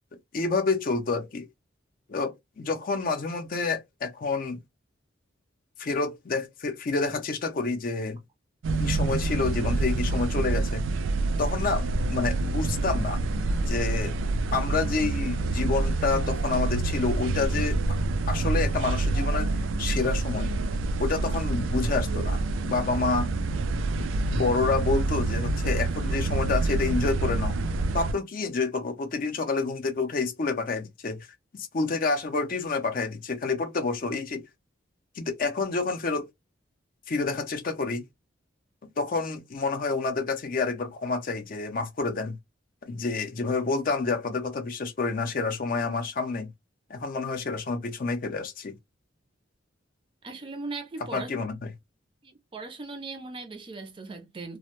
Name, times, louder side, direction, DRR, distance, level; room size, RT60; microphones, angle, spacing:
voice 1, 0.3-1.5 2.1-4.6 5.8-8.2 8.8-10.8 11.4-13.2 13.7-14.1 14.5-17.8 18.3-19.5 19.8-20.5 21.0-23.3 24.2-27.6 27.9-31.3 31.5-34.4 35.2-36.3 37.1-38.0 39.0-42.4 42.8-46.5 46.9-48.7 51.1-51.6, left 4 dB, 45° left, 0.5 m, -28 dB
sound 1, 8.6-28.1, right 3 dB, 90° right, 0.3 m, -27 dB
voice 2, 50.2-51.3 52.2-54.6, right 3 dB, 25° right, 0.4 m, -38 dB
2.1 x 2.0 x 2.9 m
head